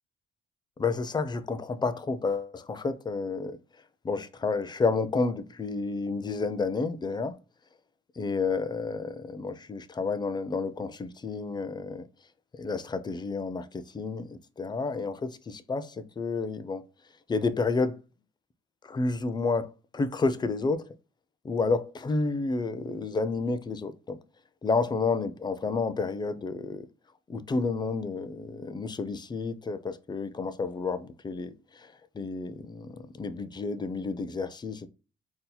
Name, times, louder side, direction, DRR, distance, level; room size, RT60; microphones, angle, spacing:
voice 1, 0.8-3.6 4.0-7.4 8.2-12.1 12.5-16.8 17.3-18.0 18.8-20.8 21.4-24.2 24.6-26.9 27.3-34.9, left 4 dB, 20° left, 0.4 m, -30 dB
3.9 x 2.7 x 2.2 m
cardioid pair, 90°, 20 cm